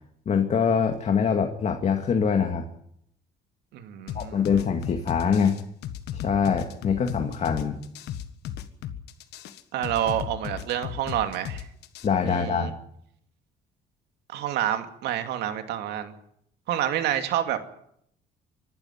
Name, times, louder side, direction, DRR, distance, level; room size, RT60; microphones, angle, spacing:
voice 1, 0.3-2.7 4.1-5.6 6.1-7.8 12.0-12.7, left 6 dB, 40° left, 5 dB, 2.1 m, -24 dB
voice 2, 3.7-4.5 9.7-11.7 12.2-12.7 14.3-16.1 16.7-17.6, right 11 dB, 80° right, 7 dB, 2.4 m, -28 dB
sound 1, 4.1-12.1, left 10 dB, 80° left, 1.6 m, -35 dB
24.5 x 12.0 x 9.4 m, 0.72 s
cardioid pair, 110°, 17 cm